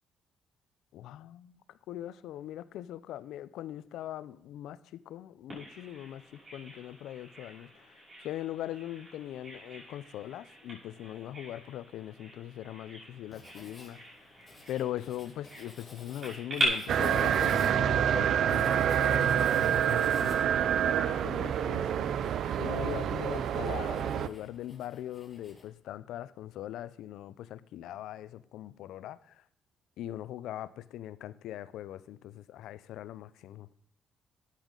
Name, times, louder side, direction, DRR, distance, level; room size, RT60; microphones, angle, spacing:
voice 1, 0.9-1.6 1.9-14.0 14.7-22.1 22.6-29.3 30.0-33.7, left 12 dB, 85° left, 0.5 m, -41 dB
Bird vocalization bird call bird song, 5.5-16.7, right 1 dB, 35° right, 5.8 m, -41 dB
Writing, 13.3-25.7, left 3 dB, 25° left, 3.4 m, -54 dB
sound 1, 16.9-24.3, right 9 dB, 70° right, 0.5 m, -27 dB
13.0 x 9.1 x 3.9 m
cardioid pair, 90°, 0 cm